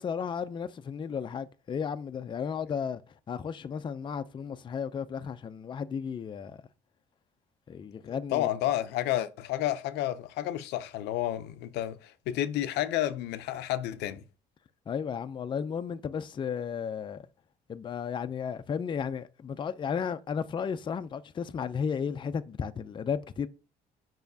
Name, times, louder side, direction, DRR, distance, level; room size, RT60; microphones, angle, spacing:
voice 1, 0.0-3.0 3.3-6.6 7.7-8.5 14.9-17.2 17.7-23.5, left 7 dB, 30° left, 0.4 m, -34 dB
voice 2, 8.0-14.2, left 13 dB, 80° left, 0.5 m, -31 dB
7.0 x 5.6 x 2.7 m
cardioid pair, 110°, 17 cm